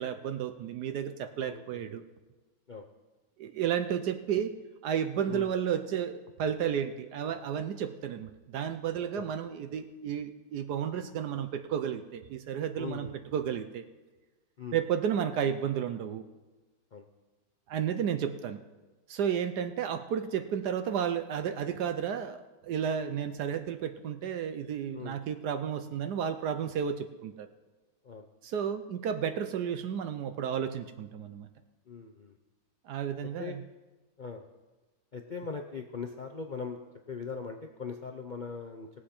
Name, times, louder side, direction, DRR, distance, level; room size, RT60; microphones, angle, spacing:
voice 1, 0.0-2.0 3.4-4.5 4.8-13.1 13.3-13.8 14.7-16.2 17.7-18.6 19.1-27.5 28.4-31.5 32.9-33.6, right 8 dB, 70° right, 8 dB, 1.2 m, -32 dB
voice 2, 1.4-1.8 2.7-2.9 5.3-5.5 9.2-9.3 12.8-13.1 14.6-14.8 16.9-17.0 24.9-25.2 28.0-28.3 31.9-32.4 33.4-33.6 34.2-34.5 35.1-36.8 37.1-38.9, left 5 dB, 90° left, 3 dB, 0.4 m, -40 dB
20.5 x 7.5 x 4.4 m, 1.2 s
omnidirectional pair, 1.9 m